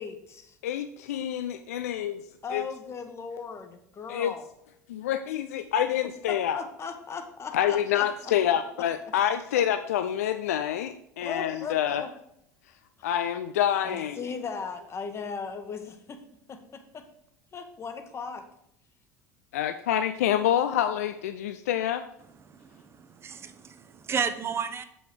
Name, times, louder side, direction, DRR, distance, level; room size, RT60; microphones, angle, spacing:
voice 1, 0.0-0.6 2.4-4.5 6.3-8.6 11.2-12.1 13.8-16.2 16.5-17.1 17.5-18.4, left 5 dB, 30° left, 8 dB, 1.1 m, -38 dB
voice 2, 0.6-2.2 2.5-2.6 4.1-4.3 4.9-6.6 7.5-12.0 13.0-14.2 19.5-22.0, left 10 dB, 70° left, 10 dB, 0.4 m, -27 dB
voice 3, 22.4-24.8, right 6 dB, 30° right, 10 dB, 0.7 m, -33 dB
7.6 x 5.3 x 4.7 m, 0.75 s
figure-of-eight pair, 70°, 8 cm